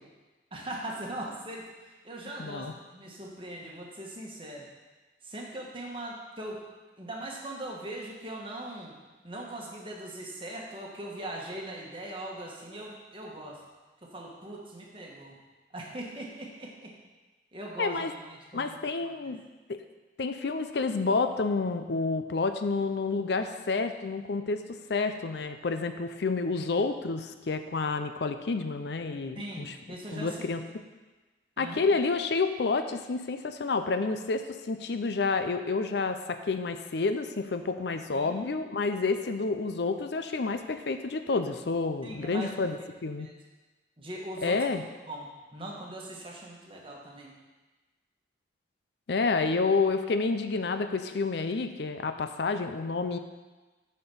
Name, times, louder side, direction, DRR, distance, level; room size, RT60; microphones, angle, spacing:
voice 1, 0.5-1.7 2.0-4.7 5.2-6.7 7.0-9.0 9.2-13.6 14.0-15.4 15.7-16.9 17.5-18.8 19.0-19.3 29.4-30.5 31.6-31.8 38.1-38.3 42.0-42.5 43.2-43.3 44.0-44.6 45.1-47.3, right 1 dB, 30° right, -1 dB, 1.4 m, -40 dB
voice 2, 2.4-2.7 17.8-18.1 18.5-19.4 19.7-19.8 20.2-29.7 30.1-30.6 31.6-43.3 44.4-44.8 49.1-53.2, left 4 dB, 65° left, 8 dB, 0.5 m, -29 dB
8.9 x 4.4 x 7.0 m, 1.2 s
head